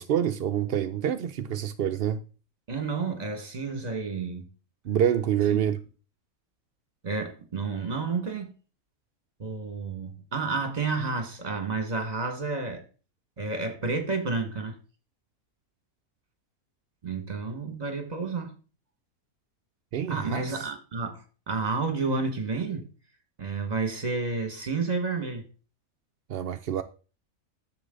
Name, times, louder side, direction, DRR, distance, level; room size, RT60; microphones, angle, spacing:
voice 1, 0.0-2.2 4.8-5.8 19.9-20.7 26.3-26.8, right 10 dB, 65° right, 0.5 m, -27 dB
voice 2, 2.7-4.5 5.5-5.6 7.0-8.5 9.4-12.8 13.4-14.8 17.0-18.5 20.1-22.9 23.4-25.4, right 4 dB, 30° right, 1.7 m, -30 dB
9.7 x 6.9 x 3.8 m
omnidirectional pair, 1.5 m